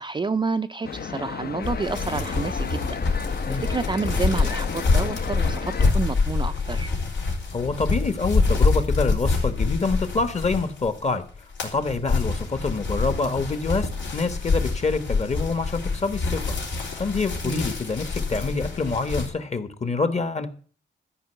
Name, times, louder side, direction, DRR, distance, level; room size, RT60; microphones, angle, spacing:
voice 1, 0.0-3.0 3.5-6.9 17.4-17.6, right 4 dB, 25° right, 0.4 m, -29 dB
sound 1, 0.8-5.9, left 6 dB, 55° left, 0.8 m, -33 dB
sound 2, 1.6-11.0 11.3-19.3, left 4 dB, 90° left, 4.0 m, -26 dB
voice 2, 7.5-11.2 11.6-16.4 17.0-20.5, left 3 dB, 35° left, 1.2 m, -26 dB
13.0 x 5.4 x 8.0 m
wide cardioid pair, 130°, 19 cm